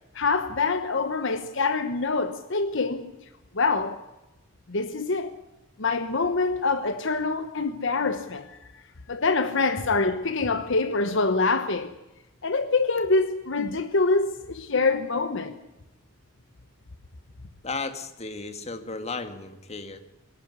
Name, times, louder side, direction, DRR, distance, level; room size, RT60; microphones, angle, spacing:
voice 1, 0.1-3.1 3.5-4.0 4.7-5.3 5.8-8.5 9.1-11.9 12.4-15.5, left 3 dB, 60° left, 1.1 m, -25 dB
voice 2, 17.6-20.0, left 3 dB, 30° left, 1.8 m, -34 dB
23.5 x 11.5 x 9.7 m
head